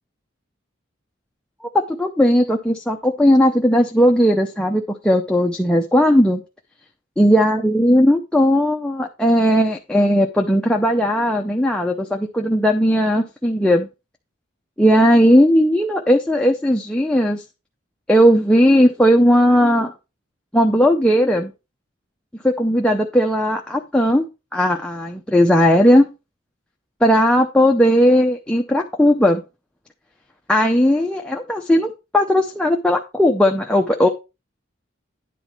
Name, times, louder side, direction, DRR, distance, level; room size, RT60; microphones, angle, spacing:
voice 1, 1.6-6.4 7.2-13.9 14.8-17.4 18.1-19.9 20.5-21.5 22.4-24.3 24.5-26.1 27.0-29.4 30.5-34.1, equal, 5° left, 0.6 m, -17 dB
10.0 x 4.1 x 5.9 m
head